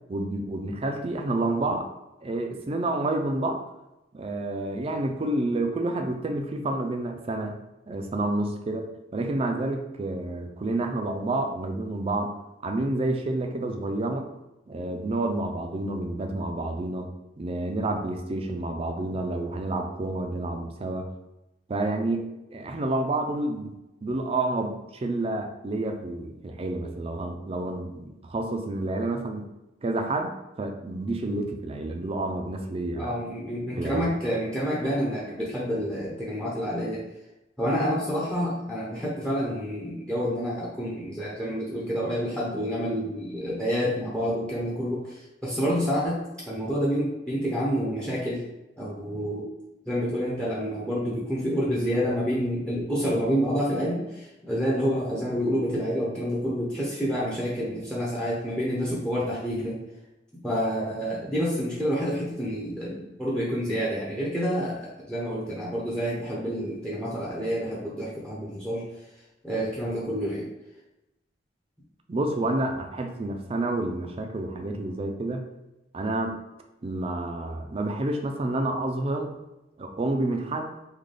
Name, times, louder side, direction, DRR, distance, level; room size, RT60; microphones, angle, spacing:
voice 1, 0.1-1.9 2.2-3.6 4.1-7.6 7.9-12.3 12.6-14.3 14.7-21.1 21.7-22.2 22.5-23.7 24.0-29.5 29.8-33.3 33.8-34.1 72.1-75.5 75.9-76.4 76.8-79.4 79.8-80.7, right 2 dB, 35° right, 5 dB, 0.4 m, -29 dB
voice 2, 33.0-37.0 37.6-46.2 46.5-48.4 48.8-49.5 49.9-59.8 60.4-68.8 69.4-70.5, equal, 5° left, -5 dB, 0.6 m, -28 dB
3.8 x 2.3 x 3.2 m, 0.96 s
head